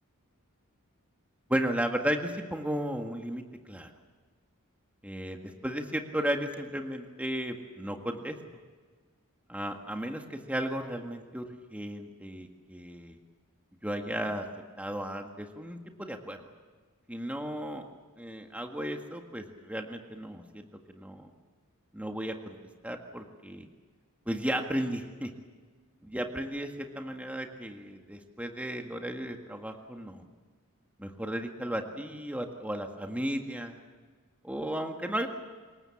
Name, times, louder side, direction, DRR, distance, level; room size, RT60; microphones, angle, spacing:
voice 1, 1.5-3.4 3.7-3.9 5.0-8.4 9.5-11.5 11.7-13.2 13.8-14.5 14.8-16.4 17.1-17.8 18.2-21.3 21.9-22.6 22.8-23.7 24.3-25.3 26.0-30.2 31.0-33.8 34.4-35.3, equal, 5° right, 3 dB, 1.8 m, -34 dB
27.5 x 22.5 x 7.2 m, 1.5 s
head